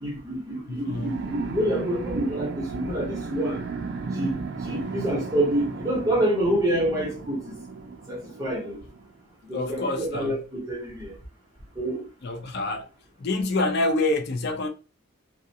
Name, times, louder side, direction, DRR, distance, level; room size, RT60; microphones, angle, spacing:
voice 1, 0.0-3.6 4.1-7.6 8.1-8.8 9.4-11.1 11.8-12.0, right 1 dB, 15° right, 0.7 m, -27 dB
voice 2, 0.7-1.2 9.5-10.4 12.2-12.9 13.2-14.7, left 2 dB, 55° left, 0.4 m, -27 dB
sound 1, 0.9-9.0, right 4 dB, 55° right, 0.4 m, -35 dB
2.4 x 2.1 x 2.7 m
head